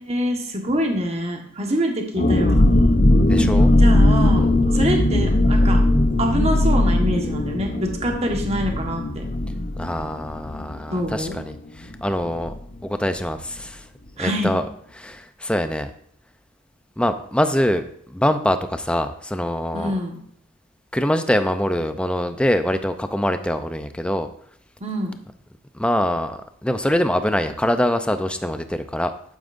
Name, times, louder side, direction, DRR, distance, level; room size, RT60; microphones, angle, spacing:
voice 1, 0.0-2.7 3.4-3.5 3.8-4.5 4.7-5.8 6.2-9.2 10.9-11.4 14.2-14.5 19.7-20.2 24.8-25.2, equal, 30° right, 2 dB, 1.4 m, -25 dB
sound 1, 2.2-11.6 11.8-11.9 12.3-12.6, left 1 dB, 40° left, 0.8 m, -18 dB
voice 2, 3.3-3.7 4.4-4.5 9.8-12.5 12.8-13.9 14.2-14.6 15.0-15.9 17.0-20.0 20.9-24.3 25.7-29.1, left 1 dB, 5° left, 9 dB, 0.5 m, -24 dB
11.5 x 9.0 x 2.6 m, 0.67 s
head